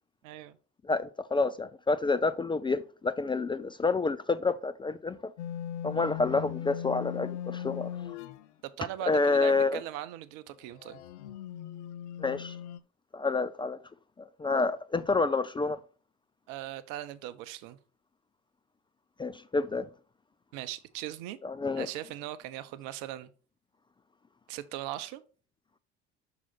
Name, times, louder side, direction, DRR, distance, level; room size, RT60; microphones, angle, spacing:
voice 1, 0.2-0.6 8.8-11.0 16.5-17.8 20.5-21.4 21.8-23.3 24.5-25.2, right 13 dB, 65° right, 0.8 m, -39 dB
voice 2, 0.9-5.2 5.8-7.9 9.1-9.8 12.2-12.6 13.1-13.8 14.4-15.8 19.2-19.9 21.4-21.9, left 3 dB, 15° left, 0.4 m, -28 dB
sound 1, 5.4-8.5 10.8-12.8, left 10 dB, 80° left, 0.5 m, -38 dB
6.3 x 3.9 x 5.6 m
hypercardioid pair, 70°, 34 cm